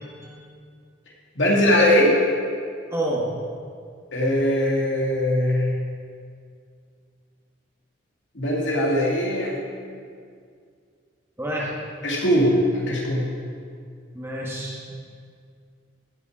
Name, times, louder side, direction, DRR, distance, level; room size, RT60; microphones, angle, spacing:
voice 1, 0.0-0.4 2.9-3.3 11.4-11.8 14.1-15.0, right 1 dB, 15° right, -4 dB, 1.6 m, -29 dB
voice 2, 1.4-2.2 4.1-5.7 8.3-9.5 12.0-13.2, equal, 70° left, -3 dB, 2.5 m, -20 dB
16.5 x 6.9 x 4.9 m, 2.2 s
head